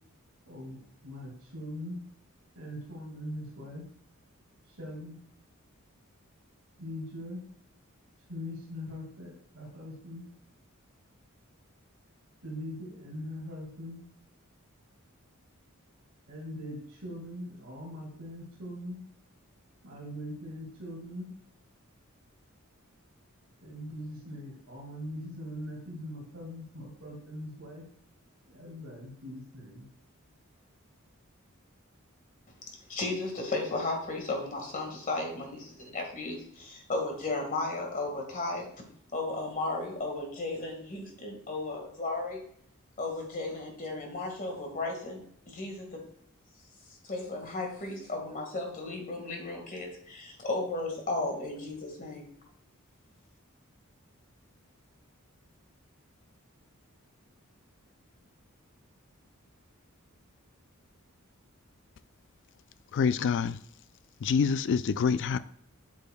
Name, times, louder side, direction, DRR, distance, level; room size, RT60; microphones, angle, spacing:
voice 1, 0.5-2.0 2.6-3.8 4.7-5.2 6.8-7.4 8.3-10.2 12.4-14.0 16.3-19.0 19.8-21.3 23.6-27.8 28.5-29.9, left 1 dB, 70° right, 2.0 m, -41 dB
voice 2, 32.9-38.7 39.1-42.4 43.0-45.2 45.5-46.0 47.0-52.3, left 2 dB, 40° left, 1.7 m, -34 dB
voice 3, 62.9-63.6 64.2-65.4, left 6 dB, 60° left, 0.3 m, -26 dB
8.4 x 6.2 x 2.3 m
head